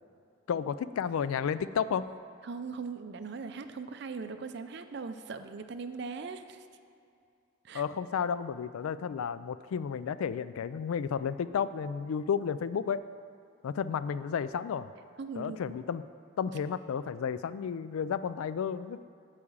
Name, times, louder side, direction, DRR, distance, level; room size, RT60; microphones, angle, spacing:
voice 1, 0.5-2.0 7.7-13.0 13.6-14.9 15.4-16.0 16.4-19.0, left 7 dB, 85° left, 14 dB, 0.3 m, -32 dB
voice 2, 2.4-6.6 7.6-7.8 15.2-15.6, right 4 dB, 50° right, 9 dB, 0.4 m, -40 dB
8.5 x 4.9 x 7.2 m, 2.5 s
head